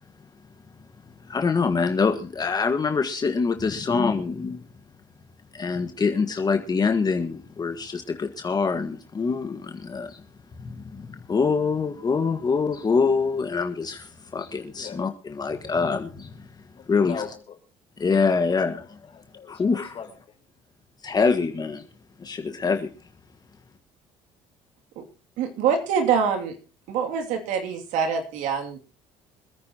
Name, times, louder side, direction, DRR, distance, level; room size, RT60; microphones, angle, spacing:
voice 1, 1.3-4.6 5.5-10.2 10.6-16.5 16.9-17.1 18.0-18.8 19.5-20.0 21.0-21.8 22.2-22.9, left 5 dB, 30° left, 5 dB, 1.6 m, -25 dB
voice 2, 14.7-15.0 15.5-15.8 16.8-17.6 18.3-20.4, left 7 dB, 50° left, 3 dB, 4.6 m, -41 dB
voice 3, 25.4-26.6 26.9-28.8, right 6 dB, 80° right, 4 dB, 2.7 m, -25 dB
25.5 x 9.5 x 2.9 m, 0.38 s
supercardioid pair, 85°, 13 cm